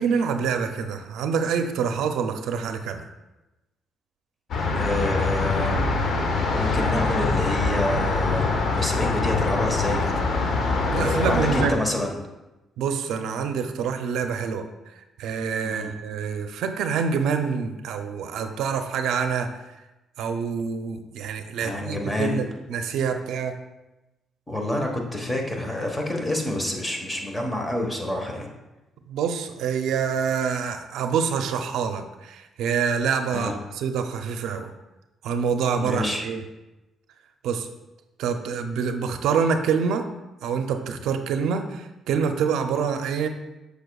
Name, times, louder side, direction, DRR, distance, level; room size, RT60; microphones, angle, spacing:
voice 1, 0.0-3.0 10.9-11.8 12.8-14.6 15.2-19.5 20.2-23.5 29.1-33.5 33.8-34.7 35.2-36.4 37.4-37.7 38.2-40.0 40.4-43.3, right 6 dB, 85° right, 7 dB, 0.5 m, -26 dB
sound 1, 4.5-11.7, left 3 dB, 65° left, 0.9 m, -24 dB
voice 2, 4.7-5.8 6.5-10.6 10.9-12.2 15.6-15.9 21.6-22.4 24.5-28.5 33.3-33.6 35.8-36.2, left 1 dB, 15° left, 2 dB, 1.3 m, -28 dB
7.9 x 6.4 x 2.3 m, 1.0 s
cardioid pair, 90°, 0 cm